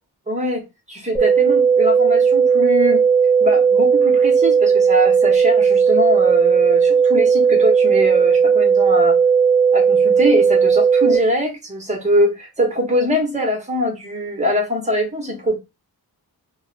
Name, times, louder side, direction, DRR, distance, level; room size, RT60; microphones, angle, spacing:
voice 1, 0.3-3.0 3.4-9.2 9.7-15.6, equal, 20° right, 1.2 m, -22 dB
sound 1, 1.2-11.2, right 6 dB, 5° left, 1.3 m, -15 dB
2.6 x 2.2 x 3.9 m
wide cardioid pair, 135°, 38 cm